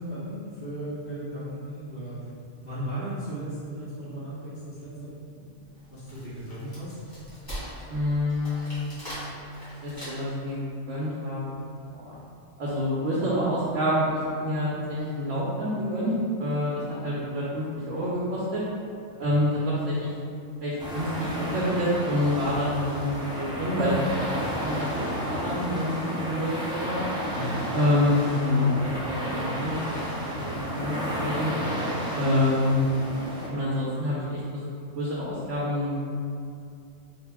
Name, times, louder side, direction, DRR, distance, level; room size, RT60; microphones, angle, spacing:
voice 1, 0.0-2.2 2.6-7.0 16.8-17.3 27.3-27.6, right 1 dB, 60° left, -16 dB, 1.8 m, -36 dB
Wood, 5.8-10.5, equal, 20° left, 1.5 m, -41 dB
voice 2, 7.9-8.8 9.8-11.4 11.9-12.1 12.6-14.1 14.4-16.1 16.4-16.7 17.0-18.6 19.2-20.1 20.6-26.5 26.8-26.9 27.7-29.9 30.4-31.5 32.1-36.0, left 1 dB, 85° right, -7 dB, 1.1 m, -27 dB
sound 1, 20.8-33.5, equal, 5° right, 0.4 m, -32 dB
3.7 x 2.8 x 3.5 m, 2.4 s
omnidirectional pair, 1.2 m